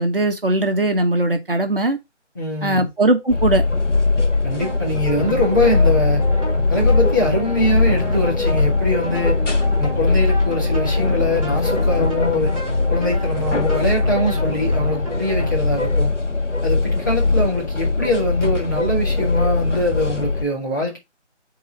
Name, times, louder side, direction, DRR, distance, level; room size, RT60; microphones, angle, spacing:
voice 1, 0.0-2.0 2.6-3.6, right 2 dB, 50° right, 1.3 m, -19 dB
voice 2, 2.3-2.9 4.4-6.2 6.7-9.4 9.8-12.5 12.9-16.1 16.6-21.0, left 1 dB, 15° left, 1.6 m, -23 dB
sound 1, 3.3-20.4, left 3 dB, 75° left, 1.7 m, -20 dB
sound 2, 4.5-15.6, right 2 dB, 30° right, 4.8 m, -32 dB
8.3 x 4.0 x 4.0 m
figure-of-eight pair, 175°, 36 cm